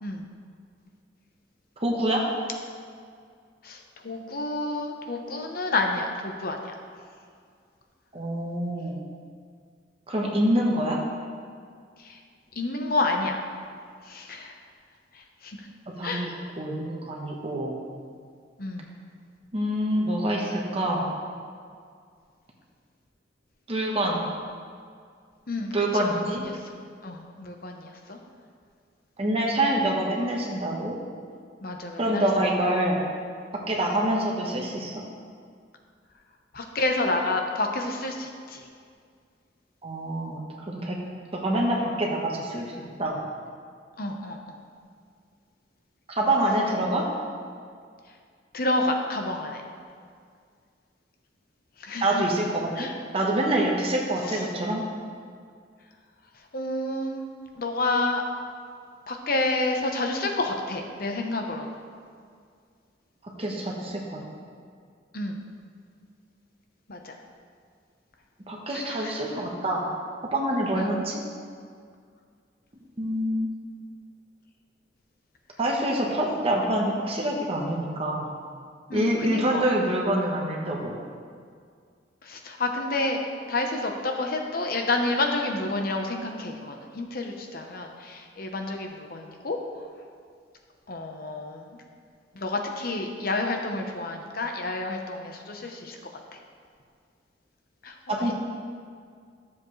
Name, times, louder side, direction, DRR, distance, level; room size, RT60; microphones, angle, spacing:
voice 1, 1.8-2.3 8.1-9.0 10.1-11.0 15.9-17.7 19.5-21.1 23.7-24.2 25.7-26.4 29.2-31.0 32.0-33.0 33.5-35.0 39.8-40.4 40.7-41.0 41.3-43.2 46.1-47.1 52.0-54.8 63.4-64.2 68.5-69.9 70.3-71.2 73.0-73.5 75.6-78.3 78.9-81.0 98.1-98.3, right 1 dB, 35° right, -2 dB, 1.2 m, -26 dB
voice 2, 4.0-6.6 12.6-13.4 14.1-14.5 15.4-15.6 16.0-16.3 18.6-18.8 25.5-26.5 27.0-27.8 28.1-28.2 31.6-32.2 36.5-38.6 44.0-44.4 48.5-49.6 51.8-52.2 52.8-52.9 56.5-57.3 57.6-58.2 59.1-61.7 65.1-65.3 66.9-67.1 68.7-69.1 70.7-70.9 78.9-79.7 82.3-83.2 83.5-89.6 90.9-91.7 92.4-96.0 97.8-98.3, left 2 dB, 55° left, 3 dB, 1.0 m, -29 dB
13.5 x 7.3 x 3.2 m, 2.1 s
head